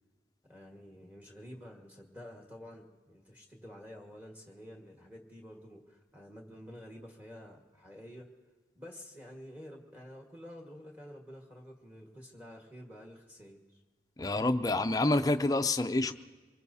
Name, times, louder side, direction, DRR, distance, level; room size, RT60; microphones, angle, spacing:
voice 1, 0.4-8.3 8.7-13.8, equal, 10° right, 0 dB, 1.5 m, -50 dB
voice 2, 14.2-16.1, left 2 dB, 20° left, 8 dB, 0.4 m, -28 dB
24.0 x 20.0 x 2.8 m, 1.4 s
head